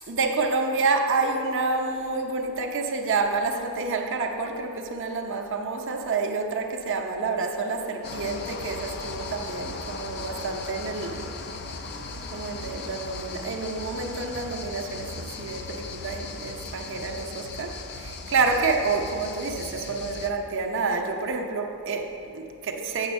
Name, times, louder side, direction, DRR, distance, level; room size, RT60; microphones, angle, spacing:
voice 1, 0.1-11.3 12.3-23.1, right 4 dB, 60° right, 3 dB, 0.7 m, -28 dB
sound 1, 8.0-20.3, left 3 dB, 50° left, 0.5 m, -37 dB
8.0 x 6.4 x 5.3 m, 2.9 s
head